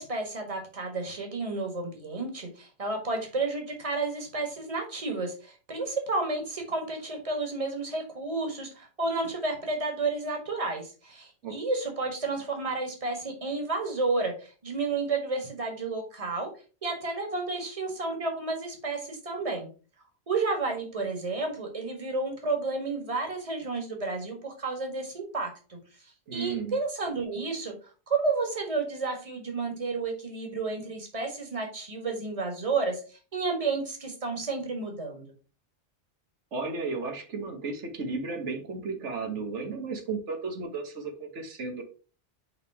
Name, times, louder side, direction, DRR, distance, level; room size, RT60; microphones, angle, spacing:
voice 1, 0.0-16.5 16.8-19.7 20.3-25.8 26.3-35.2, right 3 dB, 30° right, 3 dB, 1.6 m, -31 dB
voice 2, 26.3-26.8 36.5-41.8, right 4 dB, 90° right, 4 dB, 1.6 m, -34 dB
5.6 x 3.6 x 4.7 m, 0.36 s
omnidirectional pair, 1.2 m